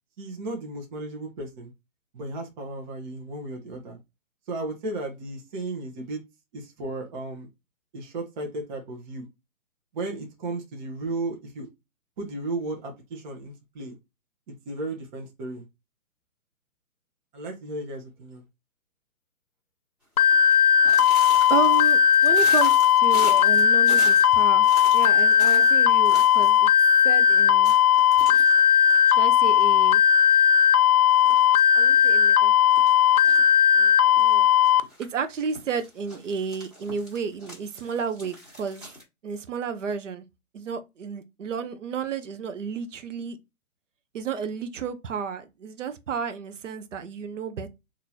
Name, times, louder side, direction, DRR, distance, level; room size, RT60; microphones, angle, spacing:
voice 1, 0.2-1.7 2.1-4.0 4.5-6.2 6.5-7.5 7.9-9.3 9.9-11.7 12.2-14.0 14.6-15.6 17.3-18.4, right 2 dB, 30° right, 1.2 m, -34 dB
sound 1, 20.2-34.8, left 9 dB, 80° left, 0.6 m, -18 dB
sound 2, 20.2-26.6 26.9-27.0 27.2-27.3 27.6-29.7 30.1-30.6 31.1-32.1 32.7-33.5 34.1-35.0 35.5-39.0, equal, ahead, 1.5 m, -42 dB
voice 2, 21.5-26.7 27.0-27.7 29.1-30.0 31.7-32.5 33.7-34.5 35.0-38.9 39.2-40.2 40.5-43.4 44.1-47.7, right 6 dB, 55° right, 0.9 m, -32 dB
4.4 x 3.0 x 2.7 m
figure-of-eight pair, 135°, 44 cm